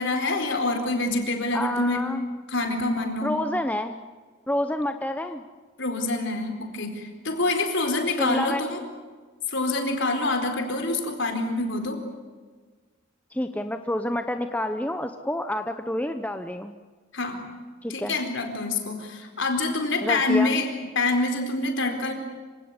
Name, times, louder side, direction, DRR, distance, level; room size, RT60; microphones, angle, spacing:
voice 1, 0.0-2.0 2.5-3.3 5.8-8.8 9.5-12.0 17.1-17.4 17.9-20.7 20.9-22.1, left 2 dB, 60° left, 5 dB, 4.4 m, -26 dB
voice 2, 1.5-2.3 3.2-4.0 4.5-5.4 8.2-8.7 13.3-16.7 17.8-18.1 20.0-20.6, left 1 dB, 5° left, 8 dB, 0.8 m, -28 dB
26.5 x 17.5 x 9.7 m, 1.4 s
head